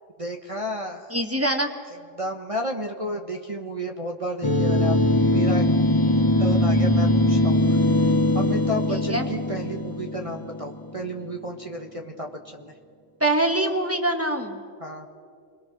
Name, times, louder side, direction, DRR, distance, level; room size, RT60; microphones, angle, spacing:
voice 1, 0.2-1.1 2.1-5.0 5.3-5.7 6.4-7.8 8.3-12.7 14.8-15.1, equal, 25° right, 1 dB, 1.4 m, -32 dB
voice 2, 1.1-1.7 8.9-9.2 13.2-14.6, right 1 dB, 10° right, 4 dB, 1.8 m, -24 dB
sound 1, 4.4-11.0, left 1 dB, 20° left, 0.8 m, -21 dB
28.0 x 22.5 x 6.3 m, 2.1 s
omnidirectional pair, 1.3 m